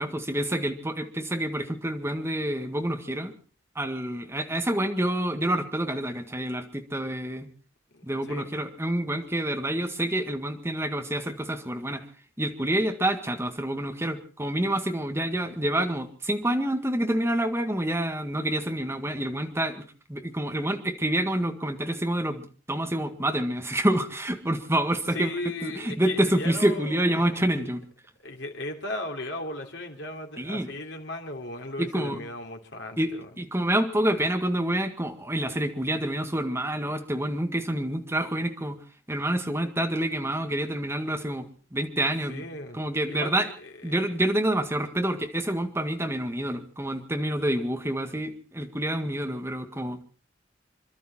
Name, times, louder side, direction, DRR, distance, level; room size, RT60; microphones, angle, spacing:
voice 1, 0.0-3.3 3.8-7.5 8.0-12.1 12.4-19.8 20.1-22.4 22.7-25.3 25.6-27.8 30.4-30.7 31.8-32.2 33.0-33.1 33.4-38.8 39.1-42.4 42.7-43.5 43.8-50.0, right 1 dB, 15° right, 5 dB, 1.7 m, -27 dB
voice 2, 7.9-8.5 25.1-27.7 28.2-33.3 42.3-42.8 43.1-44.1, left 2 dB, 65° left, 2 dB, 3.2 m, -37 dB
27.0 x 12.5 x 4.3 m, 0.40 s
head